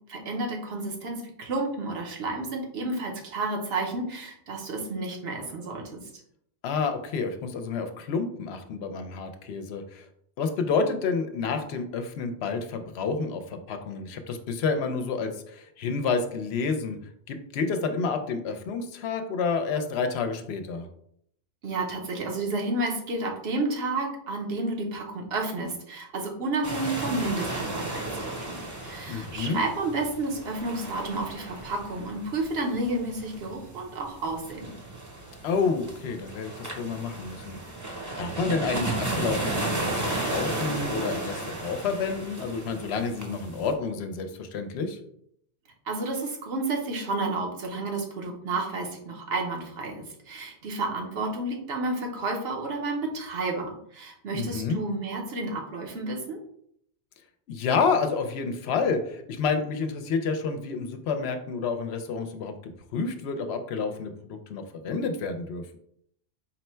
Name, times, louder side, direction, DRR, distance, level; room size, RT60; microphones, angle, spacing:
voice 1, 0.1-6.0 21.6-34.7 45.9-56.4, right 2 dB, 75° right, 1 dB, 1.1 m, -31 dB
voice 2, 6.6-10.1 10.4-17.0 17.3-20.9 29.1-29.6 35.4-37.6 38.2-45.0 54.3-54.8 57.5-65.8, left 5 dB, 75° left, 7 dB, 0.8 m, -29 dB
sound 1, 26.6-43.7, right 2 dB, 20° right, 0.6 m, -34 dB
4.2 x 2.1 x 4.3 m, 0.70 s
omnidirectional pair, 1.1 m